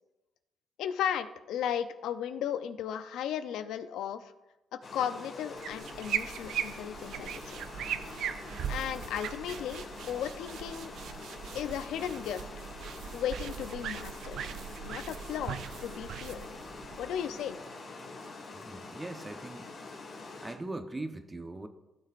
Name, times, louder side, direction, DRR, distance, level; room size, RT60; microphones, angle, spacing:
voice 1, 0.8-4.3 4.7-7.6 8.7-10.9 11.5-12.5 13.1-14.4 14.8-16.5 17.0-17.6, left 9 dB, 85° left, 11 dB, 0.5 m, -35 dB
Water, 4.8-20.5, left 3 dB, 55° left, 2.3 m, -45 dB
sound 1, 5.6-17.5, right 9 dB, 75° right, 0.5 m, -39 dB
voice 2, 18.6-19.6 20.4-21.7, right 2 dB, 20° right, 7 dB, 0.9 m, -40 dB
15.5 x 6.5 x 2.5 m, 1.0 s
cardioid pair, 90°, 0 cm